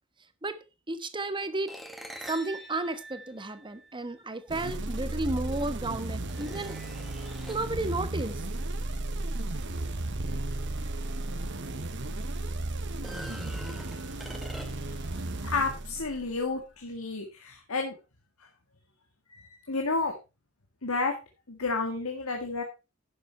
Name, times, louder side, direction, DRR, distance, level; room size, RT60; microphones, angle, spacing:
voice 1, 0.9-1.7 2.3-6.8 7.5-8.4, right 2 dB, 25° right, 1.3 m, -33 dB
sound 1, 1.7-4.2 5.4-5.5 6.2-7.8 11.1-11.2 11.6-11.7 12.9-15.0, right 1 dB, ahead, 1.5 m, -44 dB
sound 2, 4.5-16.4, right 2 dB, 60° right, 1.2 m, -34 dB
voice 2, 14.5-14.9 15.5-18.0 19.3-20.1 20.8-21.1 21.5-22.6, left 3 dB, 85° left, 1.9 m, -31 dB
11.5 x 7.3 x 4.3 m
head